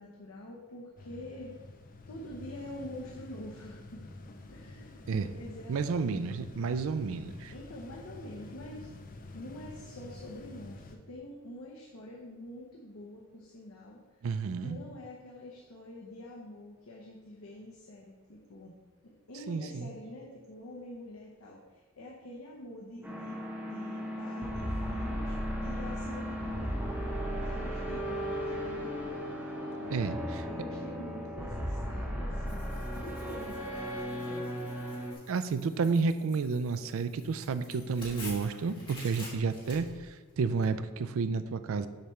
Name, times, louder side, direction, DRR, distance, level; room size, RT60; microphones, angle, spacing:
voice 1, 0.0-1.5 2.1-4.1 4.5-6.2 7.5-8.9 9.3-14.2 14.6-18.8 19.0-26.9 27.3-28.9 29.8-34.6, left 1 dB, 70° left, -2 dB, 0.8 m, -46 dB
sound 1, 1.0-11.0, left 2 dB, 40° left, 0.5 m, -48 dB
voice 2, 5.7-7.5 14.2-14.8 19.5-19.9 29.9-30.2 35.3-41.9, right 4 dB, 65° right, 12 dB, 0.4 m, -31 dB
sound 2, 23.0-35.1, equal, 10° right, 0.8 m, -35 dB
Tearing, 32.5-40.7, left 2 dB, 25° left, 1.7 m, -50 dB
6.6 x 3.2 x 5.8 m, 1.4 s
head